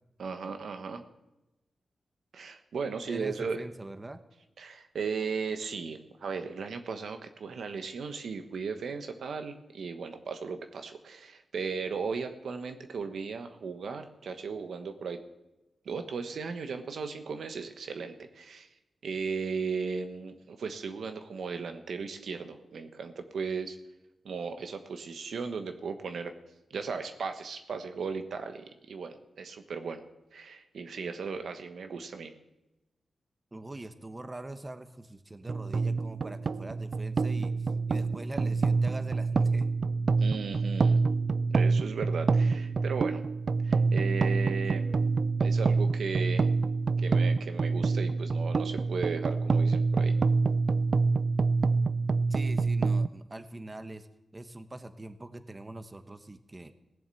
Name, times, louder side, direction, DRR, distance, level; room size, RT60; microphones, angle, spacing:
voice 1, 0.2-1.0 2.3-3.6 4.6-15.2 15.8-18.7 19.0-23.8 24.2-26.3 26.7-30.0 30.3-32.3 40.2-41.0 41.5-43.2 43.6-45.0 45.4-46.5 47.0-50.1, right 5 dB, 80° right, 7 dB, 1.1 m, -36 dB
voice 2, 3.1-4.2 33.5-39.7 40.2-40.4 52.3-54.1 54.3-56.7, right 2 dB, 30° right, 10 dB, 1.0 m, -43 dB
sound 1, 35.5-53.1, right 4 dB, 60° right, 0.4 m, -27 dB
17.0 x 7.3 x 7.6 m, 0.97 s
cardioid pair, 55°, 0 cm